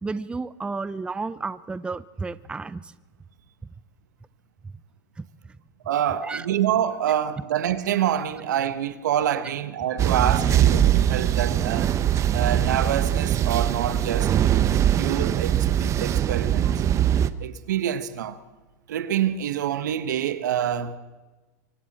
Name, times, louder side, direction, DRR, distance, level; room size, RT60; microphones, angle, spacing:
voice 1, 0.0-2.9 6.2-6.5, right 4 dB, 10° right, 0.6 m, -32 dB
voice 2, 5.8-11.9 12.3-14.5 15.0-16.8 17.4-18.4 18.9-21.0, right 10 dB, 85° right, 1.4 m, -26 dB
sound 1, 10.0-17.3, right 10 dB, 30° right, 0.9 m, -22 dB
25.0 x 24.5 x 4.3 m
supercardioid pair, 120°, 9 cm